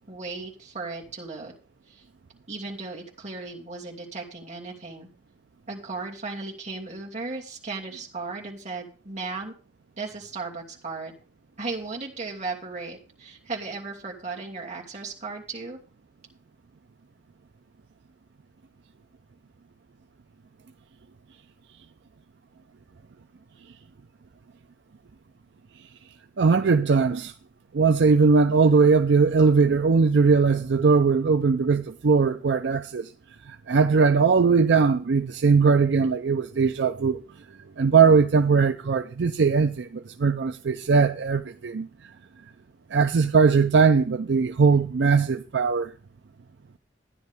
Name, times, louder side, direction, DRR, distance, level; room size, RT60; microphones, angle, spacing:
voice 1, 0.1-1.5 1.9-2.0 2.5-5.1 5.7-9.5 10.0-11.1 11.6-15.8, right 3 dB, 40° right, 2.6 m, -36 dB
voice 2, 26.4-27.3 27.7-33.1 33.5-37.2 37.8-41.9 42.9-45.9, right 5 dB, 65° right, 0.5 m, -20 dB
13.0 x 10.0 x 3.6 m
head